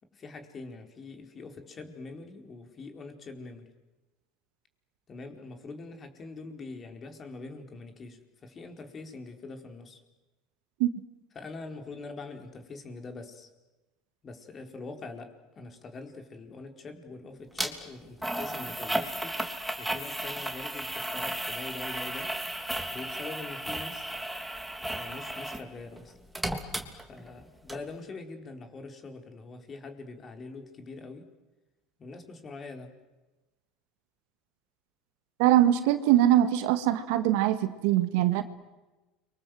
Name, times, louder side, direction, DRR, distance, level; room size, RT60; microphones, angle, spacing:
voice 1, 0.1-3.7 5.1-10.0 11.3-13.5 14.2-19.4 19.8-22.4 22.9-24.1 24.9-26.1 27.1-31.3 32.0-32.9, left 3 dB, 30° left, 5 dB, 4.6 m, -43 dB
sound 1, 17.6-17.7 18.2-25.7 26.0-27.4 27.7-27.8, right 1 dB, 5° right, 3.3 m, -34 dB
voice 2, 35.4-38.4, right 13 dB, 75° right, 10 dB, 2.0 m, -22 dB
30.0 x 25.0 x 7.9 m, 1.1 s
supercardioid pair, 115°, 0 cm